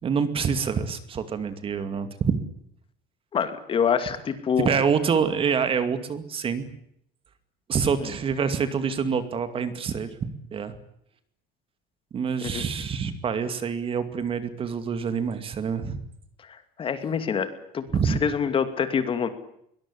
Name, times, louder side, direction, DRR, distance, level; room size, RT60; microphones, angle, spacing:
voice 1, 0.0-2.4 4.6-6.7 7.7-10.8 12.1-16.0 17.9-18.2, right 6 dB, 30° right, 10 dB, 2.4 m, -26 dB
voice 2, 3.3-4.7 8.0-8.1 12.4-12.6 16.5-19.3, left 7 dB, 30° left, 10 dB, 2.6 m, -26 dB
22.5 x 20.5 x 9.9 m, 0.72 s
cardioid pair, 155°, 19 cm